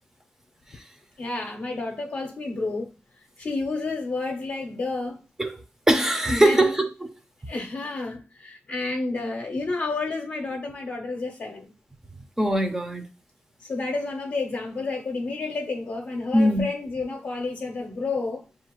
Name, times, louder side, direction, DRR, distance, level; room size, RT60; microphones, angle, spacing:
voice 1, 1.2-2.9 3.4-5.2 6.3-6.7 7.5-11.7 13.6-18.4, left 3 dB, 50° left, 0.6 m, -30 dB
voice 2, 5.9-7.1 12.4-13.1 16.3-16.7, right 1 dB, 10° right, 0.5 m, -21 dB
7.0 x 2.4 x 3.0 m
wide cardioid pair, 165°, 4 cm